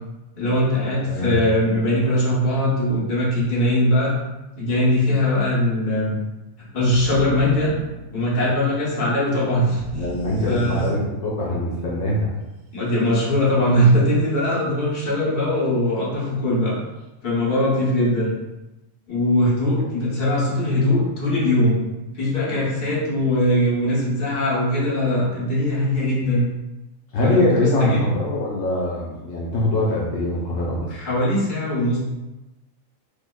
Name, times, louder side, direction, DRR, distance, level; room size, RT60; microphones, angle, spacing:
voice 1, 0.4-4.1 4.6-6.1 6.7-7.7 8.1-10.0 10.5-10.9 12.7-16.8 17.2-18.3 19.1-21.8 22.1-26.5 27.2-28.1 30.9-32.0, left 1 dB, 40° left, -7 dB, 1.1 m, -21 dB
voice 2, 1.1-1.4 9.9-12.3 27.1-30.9, left 2 dB, 75° left, -5 dB, 1.0 m, -23 dB
sound 1, 6.9-8.6 9.8-11.4, right 1 dB, 80° right, 1.1 m, -34 dB
5.1 x 2.0 x 2.3 m, 1.0 s
omnidirectional pair, 1.4 m